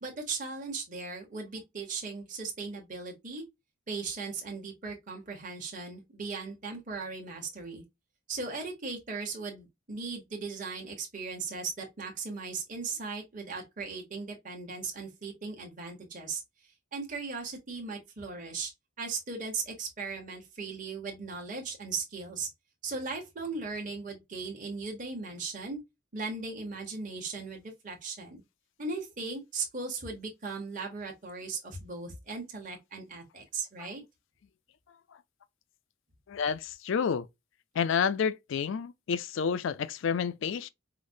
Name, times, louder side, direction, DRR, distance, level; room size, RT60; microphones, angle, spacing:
voice 1, 0.0-3.4 3.9-7.8 8.3-16.4 16.9-18.7 19.0-22.5 22.8-25.8 26.1-28.4 28.8-34.0, right 4 dB, 35° right, 1.0 m, -38 dB
voice 2, 36.3-37.3 37.7-40.7, left 6 dB, 60° left, 0.3 m, -29 dB
4.9 x 2.1 x 2.6 m
head